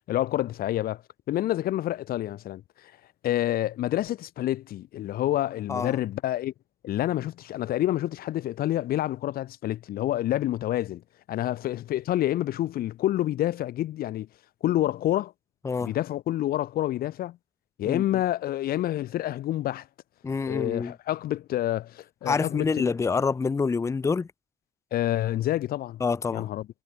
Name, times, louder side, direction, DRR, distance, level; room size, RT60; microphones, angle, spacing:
voice 1, 0.1-1.0 1.3-2.6 3.2-6.5 6.8-11.0 11.3-14.3 14.6-15.3 15.8-17.4 17.8-19.9 20.5-22.9 24.9-26.0 26.3-26.7, left 13 dB, 65° left, 0.9 m, -28 dB
voice 2, 20.2-20.9 22.3-24.3 26.0-26.5, left 5 dB, 15° left, 0.7 m, -27 dB
cardioid pair, 175°, 17 cm